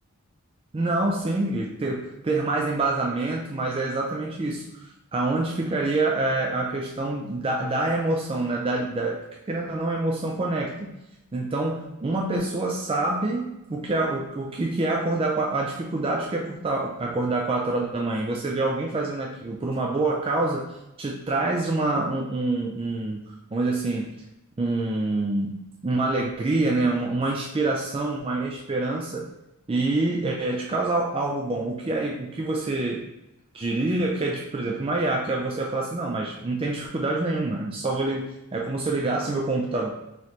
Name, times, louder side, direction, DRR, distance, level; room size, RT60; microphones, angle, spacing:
voice 1, 0.7-9.2 9.5-11.0 11.3-20.7 21.0-24.1 24.6-29.3 29.7-33.0 33.5-39.9, right 2 dB, 25° right, -1 dB, 0.3 m, -26 dB
3.2 x 2.9 x 4.0 m, 0.91 s
head